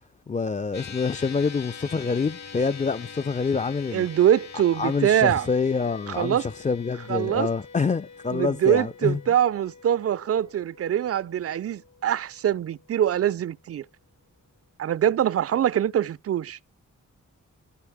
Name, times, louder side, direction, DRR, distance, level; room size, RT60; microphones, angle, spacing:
voice 1, 0.3-4.1 4.8-9.2, left 5 dB, 25° left, 0.4 m, -26 dB
sound 1, 0.7-13.3, left 5 dB, 60° left, 1.9 m, -44 dB
voice 2, 3.9-5.5 6.1-6.5 7.1-7.5 8.3-13.8 14.8-16.6, right 10 dB, 50° right, 0.4 m, -23 dB
16.0 x 5.3 x 3.5 m
cardioid pair, 60°, 31 cm